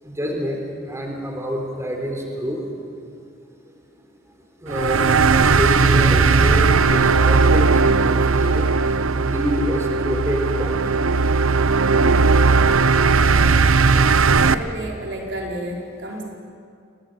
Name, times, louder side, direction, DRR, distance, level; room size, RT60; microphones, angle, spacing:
voice 1, 0.0-2.6 4.6-5.1 5.4-10.9, equal, 15° right, 1 dB, 3.8 m, -27 dB
sound 1, 4.7-14.5, right 4 dB, 80° right, 0.8 m, -17 dB
voice 2, 14.2-16.2, right 1 dB, 55° right, 0 dB, 4.9 m, -31 dB
28.0 x 19.0 x 9.3 m, 2.4 s
head